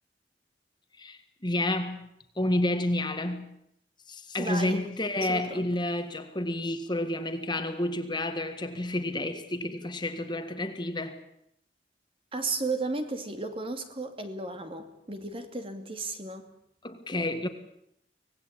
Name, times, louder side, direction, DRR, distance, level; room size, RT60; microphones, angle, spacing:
voice 1, 1.0-2.1 2.4-3.6 4.1-11.2 16.8-17.5, left 1 dB, 25° left, 1.7 m, -30 dB
voice 2, 4.4-4.8 5.3-5.7 12.3-16.5, right 3 dB, 30° right, 2.5 m, -34 dB
25.5 x 18.5 x 8.8 m
head